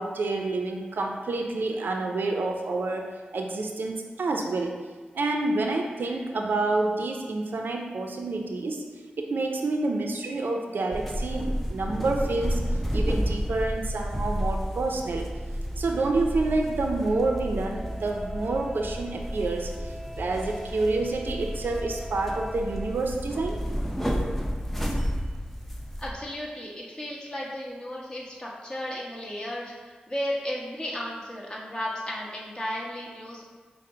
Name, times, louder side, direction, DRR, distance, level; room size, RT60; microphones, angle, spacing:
voice 1, 0.0-4.8 5.1-8.8 9.2-12.6 12.9-15.3 15.8-19.7 20.2-23.6, right 2 dB, 75° right, 2 dB, 0.4 m, -28 dB
sound 1, 10.9-26.1, equal, 5° left, 0.6 m, -31 dB
voice 2, 26.0-33.4, left 1 dB, 25° left, -4 dB, 1.1 m, -34 dB
5.5 x 2.0 x 3.8 m, 1.4 s
cardioid pair, 45°, 3 cm